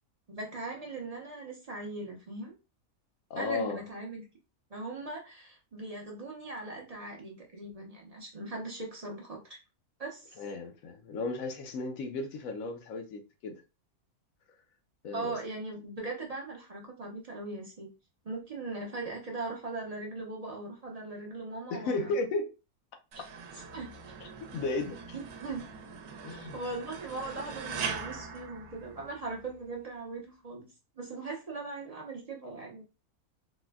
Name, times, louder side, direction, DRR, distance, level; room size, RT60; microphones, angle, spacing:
voice 1, 0.3-2.5 3.4-4.2 4.7-9.6 10.0-10.4 15.1-17.9 18.2-22.1 23.1-23.2 23.7-24.0 25.1-25.7 26.5-30.7 31.0-32.8, right 2 dB, 40° right, 0.6 m, -39 dB
voice 2, 3.3-3.8 10.4-13.6 15.0-15.4 21.7-22.5 24.2-25.0 26.2-26.6, left 3 dB, 70° left, 1.0 m, -34 dB
Andauernde Spannung, 23.1-29.4, right 5 dB, 80° right, 1.2 m, -41 dB
4.2 x 2.1 x 2.3 m
omnidirectional pair, 1.5 m